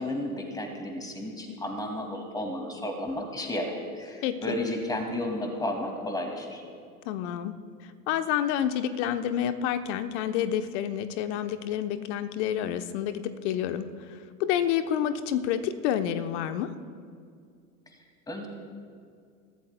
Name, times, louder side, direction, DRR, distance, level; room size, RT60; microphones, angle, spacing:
voice 1, 0.0-6.6 18.3-18.5, left 1 dB, 10° left, 3 dB, 2.2 m, -33 dB
voice 2, 4.2-4.6 7.0-7.6 8.1-16.7, left 10 dB, 50° left, 10 dB, 0.9 m, -29 dB
22.5 x 15.0 x 2.2 m, 2.2 s
hypercardioid pair, 95°, 45 cm